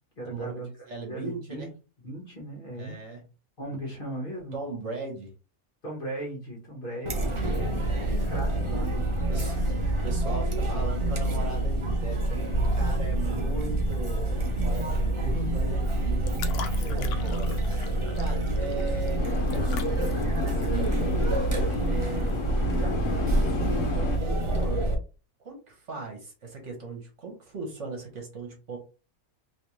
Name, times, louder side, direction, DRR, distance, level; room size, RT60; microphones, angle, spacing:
voice 1, 0.2-0.7 1.1-1.7 2.0-3.0 3.6-4.6 5.8-9.6 16.8-17.3, right 1 dB, 40° left, -1 dB, 1.3 m, -38 dB
voice 2, 0.9-1.7 2.8-3.2 4.5-5.3 7.6-8.3 9.3-9.6 10.0-14.3 14.6-15.9 16.3-17.9 18.1-21.4 21.8-22.4 22.7-25.0 25.4-28.8, right 3 dB, 55° right, 1 dB, 1.4 m, -38 dB
Chatter, 7.1-25.0, right 1 dB, 35° right, 0.5 m, -27 dB
sound 1, 15.7-22.5, left 6 dB, 85° left, 1.1 m, -43 dB
sound 2, 19.2-24.2, left 5 dB, 60° left, 1.2 m, -33 dB
3.3 x 3.1 x 2.9 m, 0.32 s
omnidirectional pair, 1.5 m